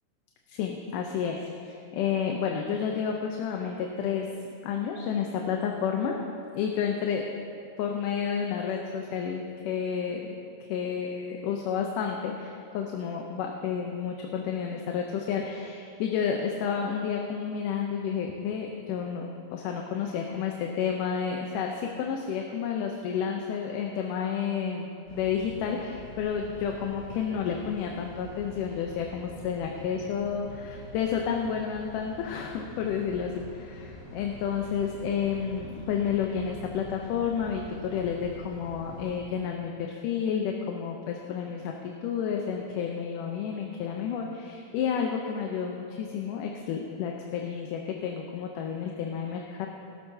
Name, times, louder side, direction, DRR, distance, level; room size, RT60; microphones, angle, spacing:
voice 1, 0.5-4.3 4.6-6.3 6.5-7.3 7.8-49.7, left 7 dB, 80° left, 1 dB, 2.3 m, -31 dB
sound 1, 25.1-39.2, equal, 35° left, 3.0 m, -45 dB
19.5 x 12.5 x 2.8 m, 2.5 s
omnidirectional pair, 3.7 m